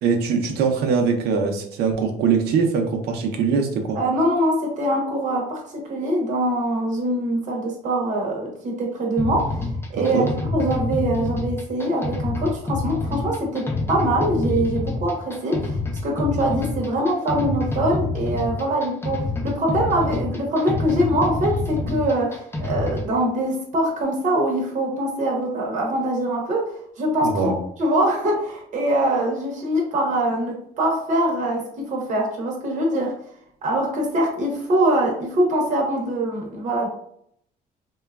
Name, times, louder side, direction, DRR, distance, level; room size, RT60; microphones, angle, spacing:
voice 1, 0.0-4.0 9.9-10.3 27.2-27.5, right 5 dB, 75° right, 4 dB, 0.6 m, -22 dB
voice 2, 3.9-15.8 16.0-27.5 27.8-33.1 33.6-36.9, right 1 dB, 45° right, -1 dB, 0.8 m, -23 dB
sound 1, 9.2-23.1, left 3 dB, 15° left, 0.5 m, -27 dB
3.0 x 2.2 x 2.3 m, 0.68 s
cardioid pair, 110°, 17 cm